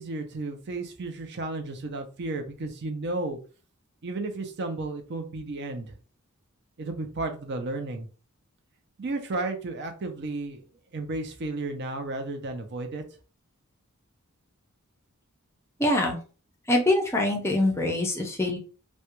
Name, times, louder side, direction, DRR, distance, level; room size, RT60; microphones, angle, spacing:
voice 1, 0.0-3.4 4.0-6.0 6.8-8.1 9.0-10.6 10.9-13.0, right 2 dB, 50° right, 6 dB, 0.5 m, -33 dB
voice 2, 15.8-16.2 16.7-18.6, left 1 dB, 10° left, 1 dB, 0.5 m, -24 dB
2.3 x 2.2 x 2.9 m, 0.37 s
head